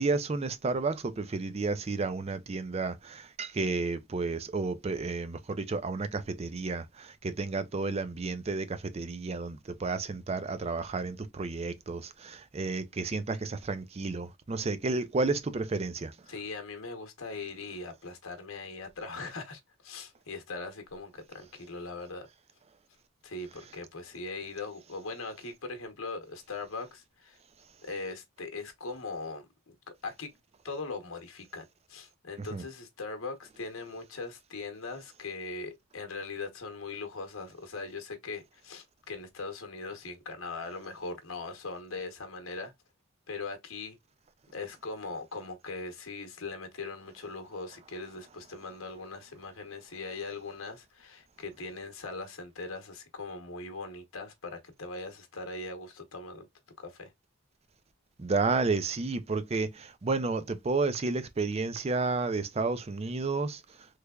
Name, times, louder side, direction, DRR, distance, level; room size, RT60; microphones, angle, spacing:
voice 1, 0.0-16.1 32.5-32.6 58.2-63.6, right 3 dB, 30° right, 0.4 m, -31 dB
voice 2, 16.3-22.3 23.2-27.4 27.8-29.7 30.0-30.3 30.6-31.6 31.9-42.7 43.3-44.0 44.5-56.5 56.8-57.1, left 3 dB, 80° left, 0.9 m, -40 dB
3.3 x 3.2 x 2.3 m
head